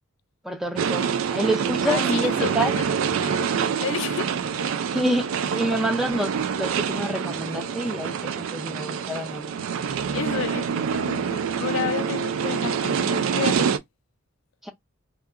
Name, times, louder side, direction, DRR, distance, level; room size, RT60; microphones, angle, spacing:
voice 1, 0.4-2.8 4.9-9.5 14.6-14.7, right 1 dB, ahead, 0.3 m, -27 dB
sound 1, 0.8-13.8, right 7 dB, 75° right, 0.3 m, -26 dB
voice 2, 1.9-2.9 3.2-4.3 10.1-13.8, left 8 dB, 75° left, 0.4 m, -31 dB
2.8 x 2.3 x 2.3 m
head